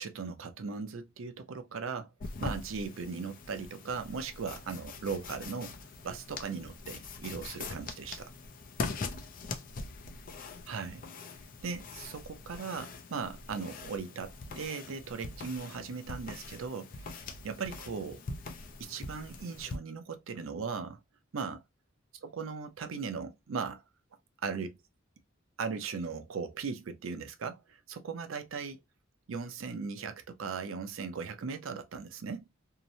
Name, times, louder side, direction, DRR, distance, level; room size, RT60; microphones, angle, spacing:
voice 1, 0.0-2.1 2.4-5.7 6.0-8.3 10.7-11.0 11.6-17.2 17.4-18.2 18.8-21.0 21.3-21.6 22.2-23.8 24.4-24.8 25.6-28.8 29.3-32.5, right 5 dB, 80° right, 0.5 m, -38 dB
sound 1, 2.2-19.8, left 3 dB, 45° left, 0.4 m, -43 dB
2.8 x 2.0 x 2.6 m
head